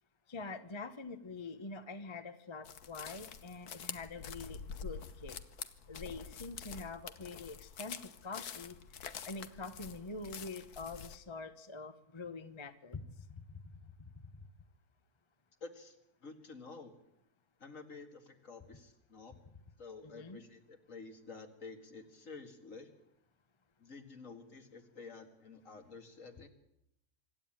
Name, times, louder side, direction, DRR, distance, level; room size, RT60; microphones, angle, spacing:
voice 1, 0.3-5.4 5.9-8.8 9.2-14.1 20.0-20.4, left 3 dB, 20° left, 9 dB, 0.9 m, -45 dB
sound 1, 2.6-11.2, left 6 dB, 80° left, 1.6 m, -47 dB
voice 2, 15.6-16.0 16.2-17.0 17.6-19.4 19.8-22.9 23.8-26.5, left 4 dB, 55° left, 5 dB, 2.5 m, -50 dB
25.5 x 12.5 x 8.9 m, 0.82 s
omnidirectional pair, 1.6 m